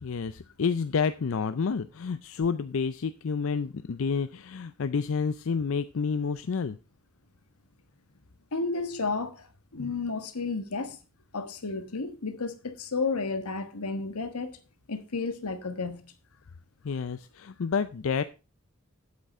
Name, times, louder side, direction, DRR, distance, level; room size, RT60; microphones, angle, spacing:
voice 1, 0.0-6.8 16.8-18.2, left 5 dB, 65° left, 0.4 m, -29 dB
voice 2, 8.5-9.5 9.7-11.0 11.3-14.6 14.9-16.0, left 4 dB, 90° left, 1.4 m, -32 dB
9.1 x 8.4 x 4.2 m
head